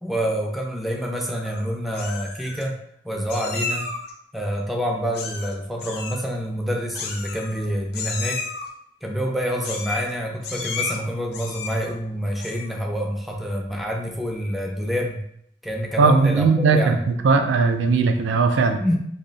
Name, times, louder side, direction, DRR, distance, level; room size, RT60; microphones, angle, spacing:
voice 1, 0.0-2.8 3.0-3.9 4.3-8.4 9.0-15.2 15.6-17.0 18.8-19.0, equal, ahead, -1 dB, 0.4 m, -27 dB
Meow, 1.2-1.6 1.9-2.6 3.3-4.1 5.1-5.5 5.8-6.2 6.9-7.6 7.9-8.7 9.6-10.1 10.4-11.0 11.3-11.9 12.3-12.8, left 4 dB, 60° left, 0.5 m, -32 dB
voice 2, 16.0-18.8, right 4 dB, 85° right, 6 dB, 0.3 m, -18 dB
2.7 x 2.0 x 3.8 m, 0.70 s
head